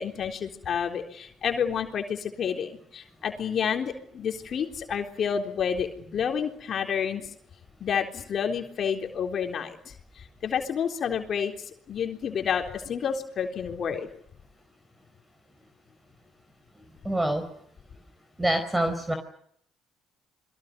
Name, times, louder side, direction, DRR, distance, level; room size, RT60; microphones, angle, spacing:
voice 1, 0.0-7.3 7.8-14.1, left 7 dB, 55° left, 4 dB, 3.8 m, -30 dB
voice 2, 17.0-17.4 18.4-19.2, right 1 dB, 15° right, 8 dB, 4.7 m, -25 dB
29.0 x 22.5 x 6.8 m, 0.68 s
hypercardioid pair, 55°, 0 cm